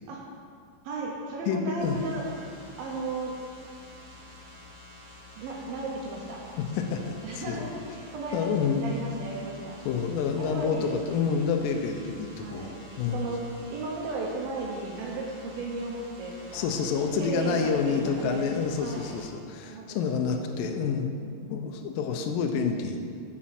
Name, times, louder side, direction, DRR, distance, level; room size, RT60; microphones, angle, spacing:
voice 1, 0.8-2.2 2.8-3.3 5.4-6.4 7.2-9.8 10.4-11.2 12.4-13.4 13.7-16.7 17.2-18.5 18.8-19.2 19.6-20.2 20.5-20.6 21.2-21.6, right 3 dB, 70° right, -2 dB, 2.5 m, -35 dB
voice 2, 1.5-2.0 6.6-7.6 8.3-8.9 9.9-13.4 16.5-21.1 21.5-23.0, left 6 dB, 85° left, 4 dB, 1.9 m, -28 dB
sound 1, 1.8-19.3, left 1 dB, 45° left, 3.1 m, -49 dB
8.6 x 6.2 x 5.9 m, 2.3 s
omnidirectional pair, 4.7 m